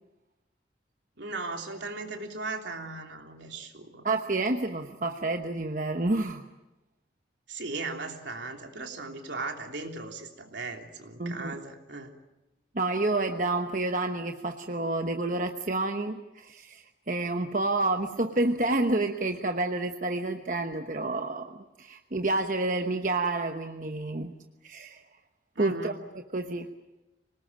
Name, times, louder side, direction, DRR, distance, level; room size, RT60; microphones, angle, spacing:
voice 1, 1.2-4.1 7.5-12.1 25.5-25.9, right 3 dB, 75° right, 3 dB, 3.2 m, -37 dB
voice 2, 4.0-6.4 11.2-11.5 12.7-24.3 24.6-25.0 25.6-26.0 26.3-26.7, right 2 dB, 45° right, 5 dB, 1.1 m, -29 dB
26.0 x 19.0 x 8.9 m, 0.99 s
head